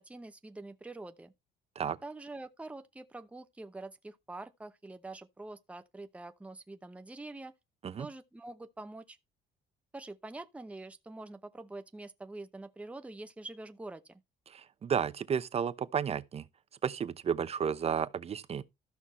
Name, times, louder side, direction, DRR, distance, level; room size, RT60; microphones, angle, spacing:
voice 1, 0.0-1.3 2.0-7.5 8.0-9.2 9.9-14.2, right 2 dB, 5° right, 0.8 m, -45 dB
voice 2, 14.5-16.4 16.8-18.6, right 7 dB, 40° right, 0.8 m, -32 dB
13.5 x 6.0 x 4.2 m
cardioid pair, 110°, 17 cm